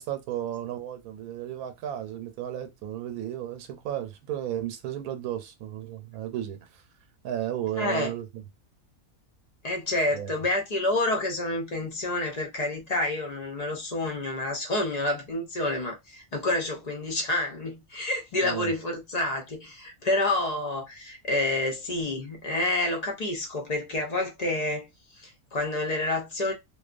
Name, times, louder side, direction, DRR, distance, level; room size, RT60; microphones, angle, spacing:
voice 1, 0.0-6.8 7.2-8.4 10.1-10.3 18.4-18.7, right 11 dB, 90° right, 1.1 m, -34 dB
voice 2, 7.7-8.1 9.6-24.9 25.1-26.5, left 2 dB, 45° left, 0.5 m, -28 dB
2.7 x 2.2 x 2.4 m
omnidirectional pair, 1.5 m